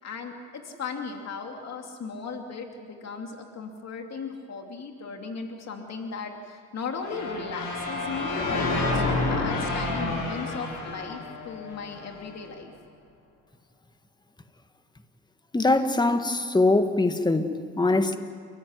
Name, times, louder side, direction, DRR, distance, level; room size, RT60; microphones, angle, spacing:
voice 1, 0.0-12.7, left 5 dB, 60° left, 2.8 m, -36 dB
sound 1, 7.0-12.1, left 2 dB, 90° left, 6.5 m, -29 dB
voice 2, 15.5-18.2, left 2 dB, 15° left, 1.6 m, -22 dB
30.0 x 14.5 x 9.6 m
cardioid pair, 90°, 30 cm